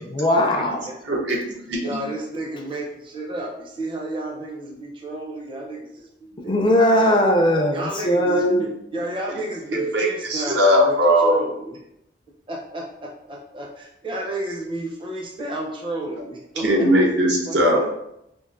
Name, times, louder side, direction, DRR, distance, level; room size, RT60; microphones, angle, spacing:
voice 1, 0.0-0.8 6.5-8.6, left 1 dB, 25° left, 2 dB, 0.4 m, -19 dB
voice 2, 1.1-2.0 9.7-11.4 16.6-17.9, equal, 75° right, -1 dB, 0.8 m, -19 dB
voice 3, 1.8-6.6 6.9-7.2 7.7-11.8 12.5-17.2 17.5-17.9, right 1 dB, 25° right, -1 dB, 0.6 m, -32 dB
4.6 x 2.5 x 2.5 m, 0.82 s
head